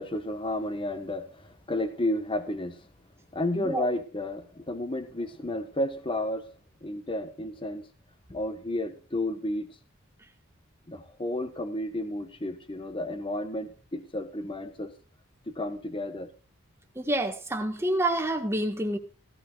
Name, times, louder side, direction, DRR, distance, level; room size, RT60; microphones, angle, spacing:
voice 1, 0.0-2.9 3.3-6.5 6.8-7.9 8.3-9.8 10.9-14.9 15.5-16.3, left 1 dB, 25° left, 1.3 m, -32 dB
voice 2, 3.5-3.9 16.9-19.0, right 1 dB, 10° right, 1.6 m, -28 dB
16.0 x 14.5 x 2.5 m
head